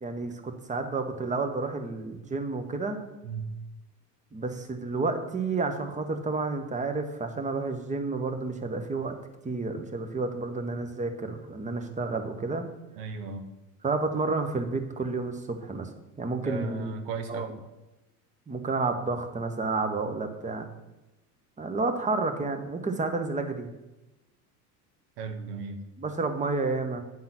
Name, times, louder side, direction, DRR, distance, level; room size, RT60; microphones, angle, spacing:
voice 1, 0.0-3.0 4.3-9.2 9.4-12.7 13.8-15.9 16.2-16.9 17.3-17.5 18.5-20.7 21.6-23.7 26.0-27.0, right 3 dB, 15° right, 7 dB, 0.9 m, -30 dB
voice 2, 13.0-13.5 16.3-17.5 25.2-25.8, right 4 dB, 70° right, 7 dB, 1.2 m, -36 dB
9.1 x 3.8 x 5.8 m, 1.0 s
hypercardioid pair, 85°, 47 cm